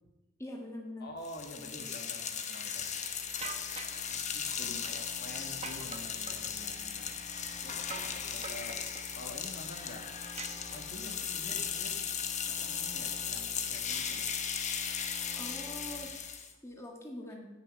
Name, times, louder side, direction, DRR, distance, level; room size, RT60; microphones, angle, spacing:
voice 1, 0.4-1.1 1.6-2.0 4.8-4.9 15.4-17.5, left 1 dB, 15° left, 0 dB, 1.5 m, -44 dB
voice 2, 1.0-3.0 4.1-7.1 7.6-8.8 9.1-12.0 12.5-14.3, left 1 dB, 55° left, 2 dB, 1.9 m, -48 dB
sound 1, 1.2-16.5, left 7 dB, 40° left, 1.0 m, -37 dB
sound 2, 2.6-16.1, right 1 dB, 15° right, 3.1 m, -52 dB
sound 3, 3.4-4.1 5.6-6.5 7.9-8.2 8.4-9.1 10.4-11.1, right 5 dB, 35° right, 0.9 m, -44 dB
17.0 x 6.7 x 5.5 m, 1.1 s
head